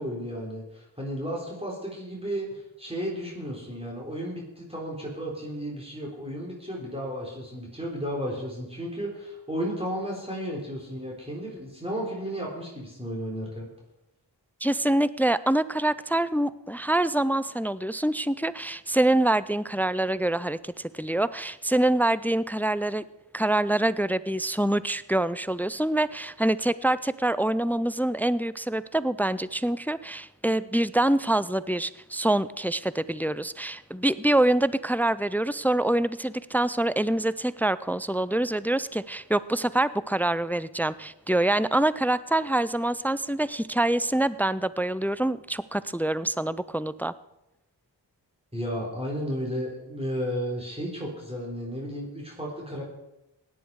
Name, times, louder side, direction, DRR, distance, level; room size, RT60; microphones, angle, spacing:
voice 1, 0.0-13.7 48.5-52.8, equal, 15° right, -3 dB, 3.8 m, -33 dB
voice 2, 14.6-23.0 23.3-47.1, right 1 dB, 5° left, 17 dB, 0.4 m, -25 dB
17.0 x 10.5 x 4.8 m, 0.92 s
wide cardioid pair, 55°, 46 cm